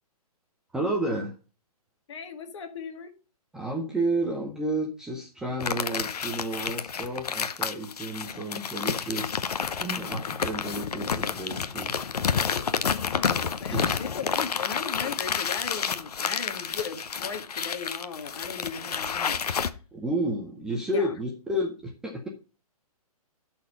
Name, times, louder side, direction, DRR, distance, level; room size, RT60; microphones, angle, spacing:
voice 1, 0.7-1.3 3.5-11.9 13.7-14.1 19.9-22.3, right 1 dB, 5° right, 0 dB, 0.5 m, -31 dB
voice 2, 2.1-3.1 12.7-19.6 20.9-21.1, left 6 dB, 50° left, 7 dB, 1.6 m, -37 dB
sound 1, 5.6-19.7, left 6 dB, 80° left, 0.9 m, -30 dB
11.0 x 4.4 x 5.4 m, 0.34 s
hypercardioid pair, 165°, 20 cm